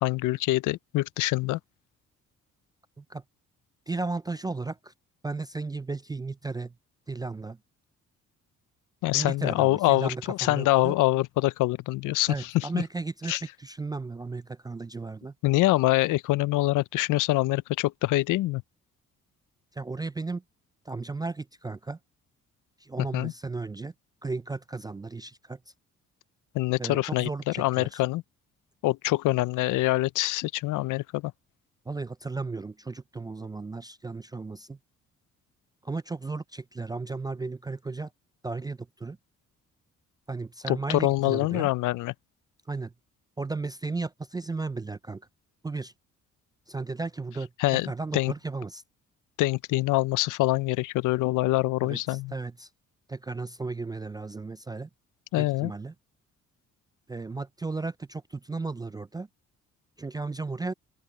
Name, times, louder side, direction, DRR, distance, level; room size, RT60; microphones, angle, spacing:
voice 1, 0.0-1.6 9.0-12.8 13.3-13.4 15.4-18.6 23.1-23.3 26.5-28.2 28.8-31.3 40.7-42.1 47.6-47.9 48.1-48.3 49.4-52.3 55.3-55.7, left 18 dB, 85° left, 0.5 m, -25 dB
voice 2, 3.9-4.9 5.2-6.7 7.1-7.6 9.1-11.0 12.3-13.3 13.6-15.3 19.7-20.4 20.9-22.0 22.8-23.9 24.2-25.6 26.8-28.0 31.9-34.8 35.8-38.1 38.4-39.2 40.3-41.7 42.7-42.9 43.4-45.3 45.6-45.9 46.7-48.8 51.8-52.7 53.1-54.9 55.4-55.9 57.1-59.3 60.0-60.7, right 3 dB, 15° right, 0.3 m, -35 dB
open air
cardioid pair, 90°, 30 cm